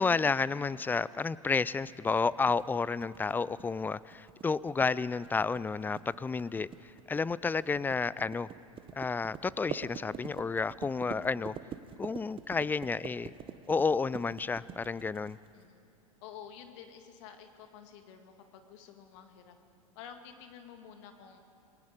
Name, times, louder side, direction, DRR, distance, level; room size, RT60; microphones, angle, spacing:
voice 1, 0.0-8.5 8.9-11.5 12.0-13.3 13.7-15.4, left 4 dB, 10° left, 20 dB, 0.4 m, -31 dB
sound 1, 1.9-15.6, right 9 dB, 30° right, 1.1 m, -45 dB
voice 2, 16.2-19.6 20.0-21.4, left 8 dB, 55° left, 6 dB, 2.0 m, -50 dB
28.5 x 20.5 x 5.1 m, 2.9 s
figure-of-eight pair, 90°, 18 cm